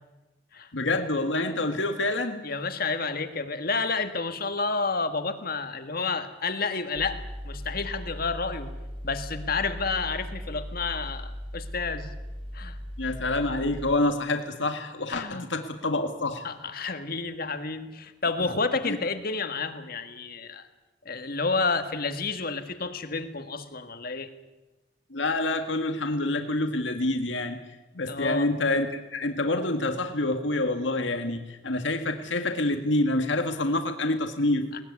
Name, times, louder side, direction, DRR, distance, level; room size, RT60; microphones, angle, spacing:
voice 1, 0.7-2.4 13.0-16.5 16.8-16.9 18.9-19.0 25.1-27.6 27.9-34.7, left 2 dB, 75° left, 6 dB, 1.8 m, -27 dB
voice 2, 2.4-8.7 9.0-12.1 12.5-12.8 15.1-15.5 16.4-20.7 21.1-24.3 28.1-28.5 34.7-34.8, left 4 dB, 50° left, 8 dB, 1.9 m, -30 dB
Mechanical fan, 6.9-13.9, equal, 25° right, 3.6 m, -38 dB
21.0 x 19.5 x 9.7 m, 1.1 s
head